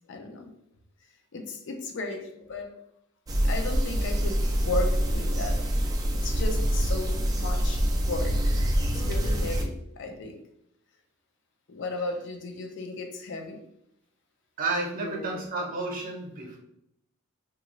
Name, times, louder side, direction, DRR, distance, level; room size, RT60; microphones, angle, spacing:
voice 1, 0.1-0.5 1.3-2.8 3.4-5.6 6.1-7.8 8.1-8.4 8.8-10.4 11.7-13.7 15.0-15.4, left 2 dB, 55° left, 4 dB, 0.4 m, -35 dB
sound 1, 3.3-9.6, equal, 15° right, 0.3 m, -25 dB
voice 2, 14.6-16.6, right 3 dB, 40° right, -1 dB, 0.8 m, -31 dB
2.9 x 2.4 x 3.0 m, 0.76 s
head